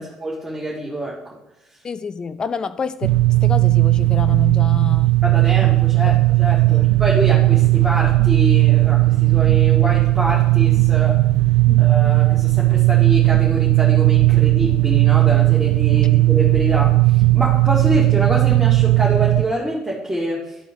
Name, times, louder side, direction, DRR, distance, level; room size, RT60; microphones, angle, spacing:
voice 1, 0.0-1.4 5.2-11.2 11.8-20.6, right 1 dB, 10° right, -6 dB, 1.9 m, -26 dB
voice 2, 1.8-5.2 6.1-6.2 6.7-6.9 11.7-11.9, left 5 dB, 35° left, 14 dB, 0.5 m, -28 dB
sound 1, 3.0-19.4, right 18 dB, 80° right, 0.4 m, -16 dB
12.0 x 4.1 x 3.7 m, 0.91 s
supercardioid pair, 75°, 2 cm